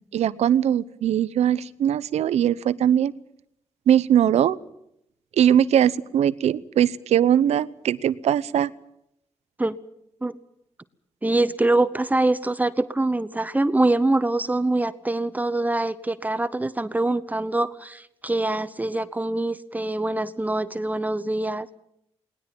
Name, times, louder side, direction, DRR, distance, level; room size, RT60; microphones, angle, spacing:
voice 1, 0.1-3.1 3.9-4.6 5.4-8.7, right 10 dB, 90° right, 17 dB, 0.9 m, -20 dB
voice 2, 11.2-21.8, right 2 dB, 15° right, 13 dB, 0.9 m, -24 dB
20.0 x 19.0 x 9.0 m, 0.77 s
cardioid pair, 95°, 11 cm